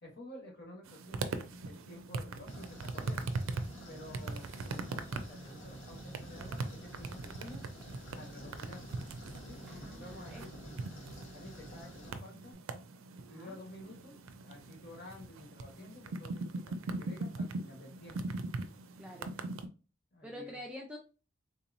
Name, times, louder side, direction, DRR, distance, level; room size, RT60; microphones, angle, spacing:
voice 1, 0.0-3.3 3.9-7.6 8.1-8.9 9.5-10.8 11.3-12.5 13.3-14.1 14.4-18.3 20.1-20.6, left 1 dB, 50° left, -1 dB, 1.3 m, -51 dB
sound 1, 0.9-19.7, right 3 dB, 75° right, 0.4 m, -41 dB
sound 2, 2.5-12.1, equal, 70° left, 1.1 m, -50 dB
Tools, 5.2-12.5, equal, 85° left, 2.0 m, -61 dB
voice 2, 9.7-10.4 13.3-13.6 19.0-19.4 20.2-21.0, left 1 dB, 5° right, -2 dB, 0.4 m, -47 dB
3.6 x 2.9 x 2.6 m, 0.33 s
head